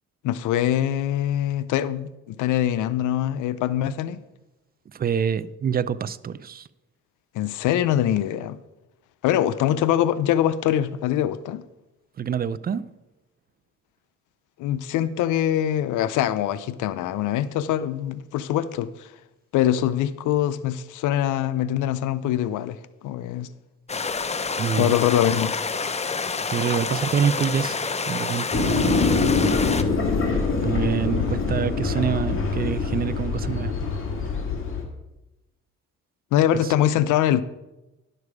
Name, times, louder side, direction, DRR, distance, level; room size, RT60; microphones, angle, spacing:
voice 1, 0.2-4.2 7.3-8.6 9.2-11.6 14.6-19.1 19.5-22.8 23.0-23.5 24.8-25.6 36.3-37.4, left 11 dB, 90° left, 0.5 m, -23 dB
voice 2, 4.9-6.7 12.2-12.9 24.6-24.9 26.5-27.8 28.1-29.3 30.6-33.7 36.5-36.7, right 7 dB, 30° right, 0.4 m, -26 dB
sound 1, 23.9-29.8, left 4 dB, 20° left, 0.6 m, -28 dB
sound 2, 28.5-34.8, left 4 dB, 45° left, 1.9 m, -24 dB
10.5 x 6.8 x 4.8 m
cardioid pair, 90°, 30 cm